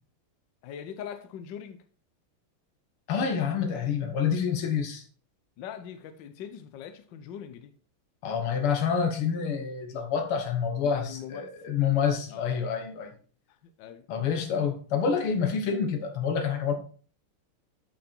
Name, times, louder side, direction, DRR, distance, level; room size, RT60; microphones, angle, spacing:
voice 1, 0.6-1.8 5.6-7.7 10.8-11.7 12.3-12.6 13.8-14.1, left 9 dB, 65° left, 1.4 m, -41 dB
voice 2, 3.1-5.0 8.2-13.1 14.1-16.7, left 6 dB, 90° left, 2.2 m, -27 dB
8.0 x 5.8 x 4.4 m
omnidirectional pair, 2.4 m